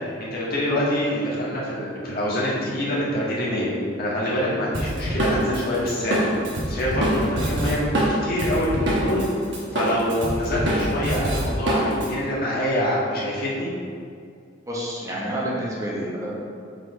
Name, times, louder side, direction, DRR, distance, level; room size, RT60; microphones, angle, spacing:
voice 1, 0.0-3.7 4.0-9.2 9.7-13.7, left 1 dB, 50° left, -6 dB, 1.5 m, -25 dB
Drum kit, 4.7-9.3 9.5-12.1, right 1 dB, 65° right, 1.2 m, -24 dB
voice 2, 14.7-16.3, equal, 15° right, -6 dB, 1.0 m, -28 dB
5.1 x 4.3 x 4.8 m, 2.3 s
head